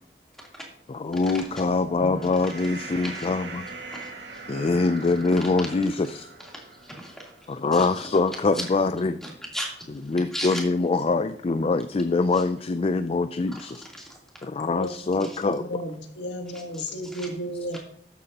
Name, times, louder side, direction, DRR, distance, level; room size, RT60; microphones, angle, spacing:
voice 1, 0.9-3.7 4.5-6.3 7.5-9.2 10.1-13.9 14.4-15.7, left 3 dB, 35° left, 11 dB, 0.4 m, -24 dB
sound 1, 1.2-7.7, right 3 dB, 75° right, 2.1 m, -41 dB
voice 2, 3.9-4.4 6.4-7.3 7.7-8.0 8.5-8.6 9.2-9.7 10.0-10.6 12.3-12.4 13.9-14.2 15.2-15.4 16.5-17.3 17.7-17.8, equal, 5° left, -3 dB, 3.2 m, -37 dB
voice 3, 14.6-17.8, equal, 90° left, 4 dB, 1.6 m, -34 dB
13.0 x 9.4 x 2.9 m, 0.68 s
head